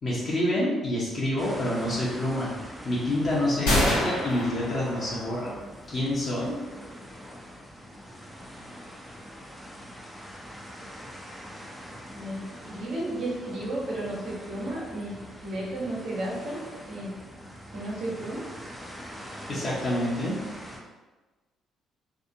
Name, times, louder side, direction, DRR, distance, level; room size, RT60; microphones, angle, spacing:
voice 1, 0.0-2.5 2.8-5.6 5.9-6.6 19.5-20.4, left 1 dB, 45° left, -7 dB, 0.8 m, -27 dB
sound 1, 1.4-20.8, equal, ahead, 0.6 m, -44 dB
sound 2, 3.7-5.5, left 1 dB, 75° left, 1.0 m, -27 dB
voice 2, 12.1-16.6 16.9-17.1 17.4-18.5, right 1 dB, 55° right, -5 dB, 1.2 m, -33 dB
3.3 x 2.8 x 2.6 m, 1.2 s
figure-of-eight pair, 45°, 0 cm